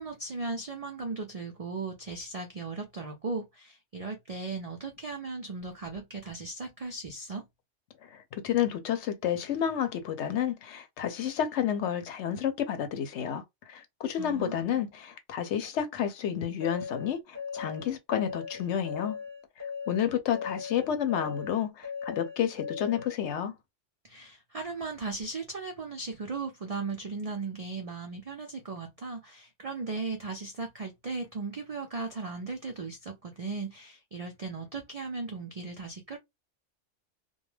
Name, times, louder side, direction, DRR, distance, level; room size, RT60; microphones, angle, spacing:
voice 1, 0.0-7.4 14.2-14.9 24.0-36.2, right 3 dB, 65° right, 0.3 m, -37 dB
voice 2, 8.0-19.2 19.9-23.5, left 9 dB, 70° left, 0.8 m, -30 dB
sound 1, 16.6-23.2, left 6 dB, 15° left, 0.7 m, -38 dB
2.3 x 2.1 x 3.1 m
omnidirectional pair, 1.3 m